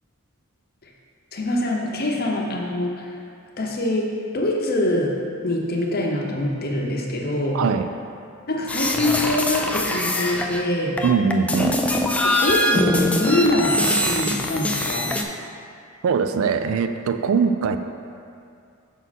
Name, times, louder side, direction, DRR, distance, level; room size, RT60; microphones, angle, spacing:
voice 1, 1.3-3.1 3.6-4.1 4.3-5.1 5.4-7.6 8.5-11.0 12.2-15.2, left 1 dB, 45° left, -1 dB, 0.9 m, -24 dB
voice 2, 7.5-7.9 11.0-11.8 16.0-17.8, right 5 dB, 75° right, 9 dB, 0.4 m, -21 dB
sound 1, 8.7-10.6 11.0-15.2, left 1 dB, 5° left, 0.3 m, -23 dB
6.1 x 5.5 x 4.1 m, 2.5 s
head